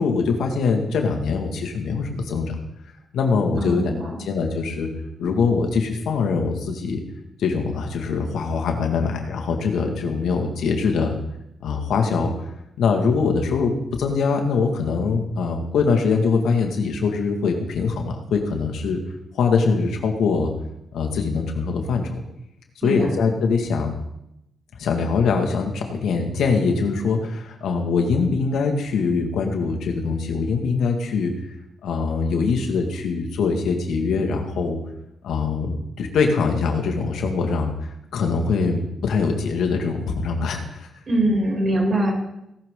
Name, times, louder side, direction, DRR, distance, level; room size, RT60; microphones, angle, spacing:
voice 1, 0.0-2.6 3.1-3.9 4.2-4.9 5.2-7.0 7.4-11.2 11.6-12.3 12.8-19.0 19.4-20.5 20.9-22.2 22.8-23.9 24.8-31.3 31.8-34.8 35.2-37.7 38.1-40.9, left 4 dB, 85° left, 3 dB, 2.1 m, -23 dB
voice 2, 3.6-4.2 22.8-23.1 41.1-42.1, right 1 dB, 50° right, -2 dB, 6.8 m, -22 dB
18.0 x 12.0 x 3.9 m, 0.84 s
cardioid pair, 90°, 0 cm